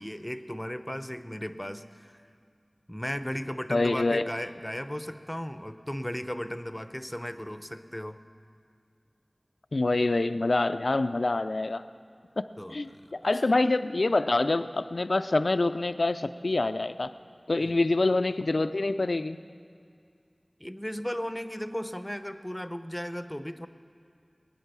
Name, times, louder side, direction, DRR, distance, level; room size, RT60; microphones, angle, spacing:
voice 1, 0.0-2.2 2.9-8.2 12.6-13.1 17.6-17.7 20.6-23.7, equal, 10° left, 10 dB, 0.7 m, -36 dB
voice 2, 3.7-4.3 9.7-11.8 12.4-12.5 12.7-17.1 17.5-19.4, left 2 dB, 90° left, 12 dB, 0.4 m, -26 dB
21.0 x 9.6 x 6.8 m, 2.3 s
wide cardioid pair, 45°, 0 cm